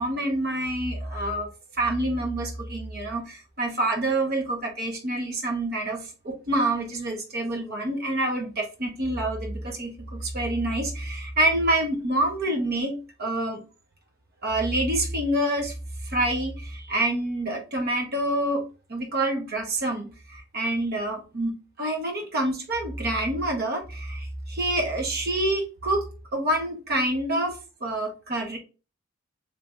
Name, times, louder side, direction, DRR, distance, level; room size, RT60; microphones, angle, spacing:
voice 1, 0.0-1.5 1.8-13.6 14.4-15.7 16.0-18.6 18.9-26.1 26.3-28.6, right 1 dB, 50° right, 1.1 m, -27 dB
3.4 x 2.8 x 3.4 m
head